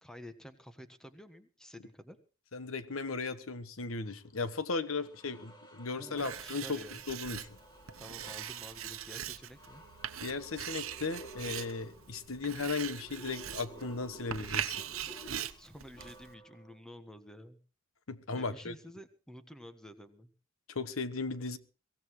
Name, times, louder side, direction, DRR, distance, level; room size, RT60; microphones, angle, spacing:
voice 1, 0.0-2.2 6.0-7.0 8.0-9.8 15.6-17.6 18.4-20.3, equal, 5° left, 9 dB, 1.3 m, -50 dB
voice 2, 2.5-7.6 10.2-14.8 18.1-18.7 20.7-21.6, left 4 dB, 90° left, 13 dB, 1.2 m, -36 dB
sound 1, 4.1-4.2 4.8-16.8, right 1 dB, 20° left, 2.5 m, -54 dB
Writing, 6.2-16.3, right 10 dB, 85° right, 0.9 m, -41 dB
23.5 x 16.5 x 3.2 m, 0.36 s
head